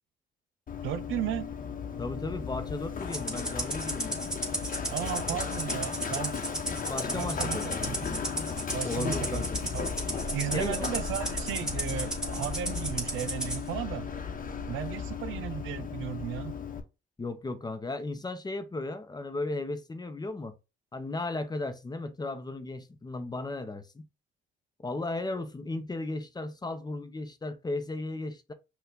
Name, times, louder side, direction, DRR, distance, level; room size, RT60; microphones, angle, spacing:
Run, 0.7-16.8, left 6 dB, 45° left, 1.0 m, -35 dB
voice 1, 0.8-1.5 4.9-6.5 7.1-8.2 8.7-9.9 10.3-14.1 14.7-16.5, right 11 dB, 85° right, 0.6 m, -35 dB
voice 2, 2.0-4.3 6.9-8.0 8.8-9.6 10.5-10.9 17.2-20.5 20.9-24.1 24.8-28.5, left 2 dB, 20° left, 0.7 m, -35 dB
Rattle (instrument), 3.1-13.6, right 1 dB, 5° right, 1.5 m, -35 dB
5.6 x 2.4 x 3.7 m
cardioid pair, 90°, 20 cm